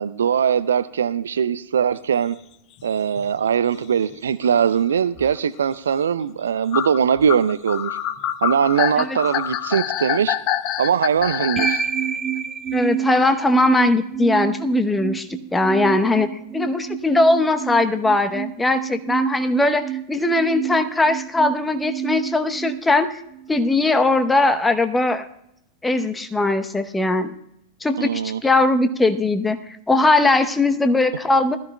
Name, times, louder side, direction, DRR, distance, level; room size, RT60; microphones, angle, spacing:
voice 1, 0.0-2.4 2.8-8.0 8.4-10.4 10.8-11.8 28.0-28.4, right 7 dB, 65° right, 0.4 m, -21 dB
sound 1, 2.8-2.9 3.2-3.4 4.1-4.2 4.4-4.5 5.2-5.4 5.9-6.0 6.7-11.9, left 11 dB, 40° left, 0.6 m, -26 dB
sound 2, 11.6-23.6, right 9 dB, 15° right, 0.7 m, -29 dB
voice 2, 12.7-23.2 23.5-25.3 25.8-27.3 27.8-31.6, left 2 dB, 10° left, 0.9 m, -20 dB
19.5 x 13.5 x 2.2 m
figure-of-eight pair, 90°, 0 cm